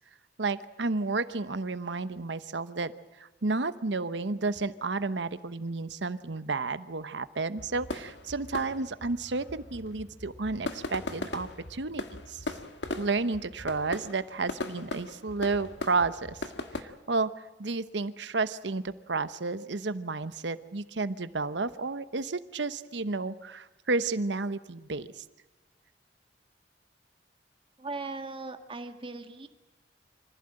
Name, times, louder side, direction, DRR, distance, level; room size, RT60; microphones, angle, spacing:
voice 1, 0.4-2.9 3.2-12.6 13.0-16.4 16.7-25.2, right 3 dB, 75° right, 13 dB, 1.0 m, -32 dB
sound 1, 7.6-16.8, left 2 dB, 70° left, 1.7 m, -39 dB
voice 2, 27.8-29.5, right 3 dB, 30° right, 7 dB, 1.8 m, -38 dB
25.5 x 15.5 x 8.9 m, 1.1 s
head